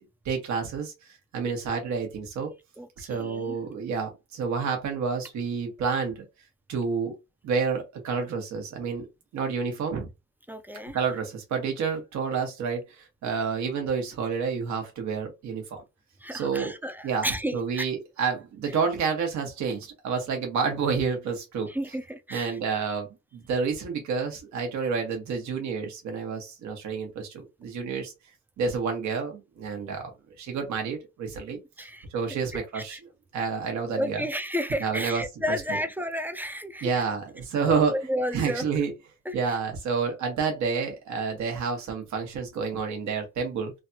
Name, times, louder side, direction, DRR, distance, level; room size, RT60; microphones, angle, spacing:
voice 1, 0.2-0.9 1.3-2.5 3.0-6.2 6.7-7.2 7.4-9.1 9.3-10.1 10.9-15.8 16.3-16.7 17.0-17.3 17.5-21.7 22.3-28.1 28.6-30.1 30.4-31.9 32.1-33.0 33.3-34.3 34.8-35.2 35.5-35.8 36.8-38.0 38.3-38.9 39.3-43.7, right 5 dB, 70° right, 1.1 m, -29 dB
voice 2, 2.8-3.6 10.5-11.0 16.2-17.9 21.7-22.6 31.8-32.1 32.7-33.0 33.9-37.0 37.6-38.6 39.3-39.4, equal, 5° right, 0.4 m, -32 dB
3.2 x 2.2 x 2.7 m
cardioid pair, 90°, 30 cm